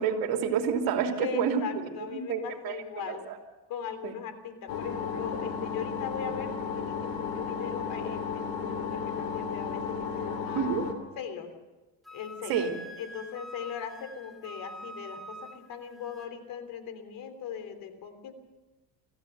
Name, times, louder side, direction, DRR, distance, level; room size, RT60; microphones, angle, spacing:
voice 1, 0.0-1.6 2.1-2.8 3.1-3.2 4.0-4.1 10.5-10.8 12.5-12.7, right 7 dB, 70° right, 3 dB, 3.1 m, -28 dB
voice 2, 1.2-3.3 3.7-10.7 11.2-11.5 12.1-12.7 13.0-18.3, left 7 dB, 65° left, 9 dB, 3.3 m, -39 dB
sound 1, 4.7-10.9, left 6 dB, 80° left, 3.1 m, -33 dB
Wind instrument woodwind instrument, 12.0-16.3, equal, ahead, 2.3 m, -45 dB
25.0 x 15.5 x 6.8 m, 1.1 s
cardioid pair, 115°, 37 cm